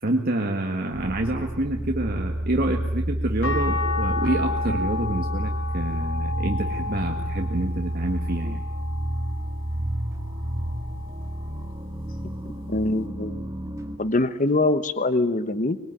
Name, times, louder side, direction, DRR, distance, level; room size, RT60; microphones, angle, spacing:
voice 1, 0.0-8.6, right 1 dB, 50° right, 2 dB, 1.8 m, -27 dB
sound 1, 0.9-14.0, right 1 dB, 15° right, 1.8 m, -30 dB
sound 2, 3.4-9.7 10.3-11.6 13.1-13.2, left 3 dB, 90° left, 4.4 m, -33 dB
voice 2, 12.7-13.4 14.0-15.8, left 2 dB, 40° left, 13 dB, 1.1 m, -23 dB
25.0 x 21.0 x 9.8 m, 1.0 s
head